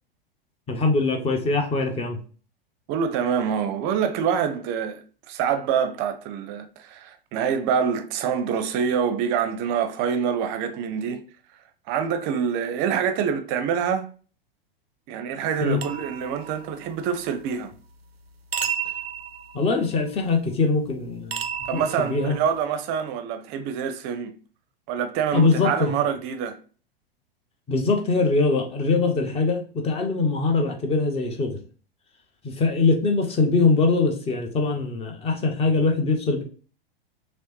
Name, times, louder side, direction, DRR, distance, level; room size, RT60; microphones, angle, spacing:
voice 1, 0.7-2.2 15.6-15.8 19.5-22.4 25.3-25.9 27.7-31.6 32.4-36.4, left 3 dB, 20° left, 0.8 m, -22 dB
voice 2, 2.9-11.3 11.9-14.1 15.1-17.7 21.7-24.4 24.9-26.6, right 7 dB, 35° right, 0.6 m, -26 dB
sound 1, 15.8-17.0 18.5-20.0 21.3-22.6, right 7 dB, 90° right, 0.5 m, -32 dB
6.1 x 2.1 x 3.0 m
figure-of-eight pair, 95°, 30 cm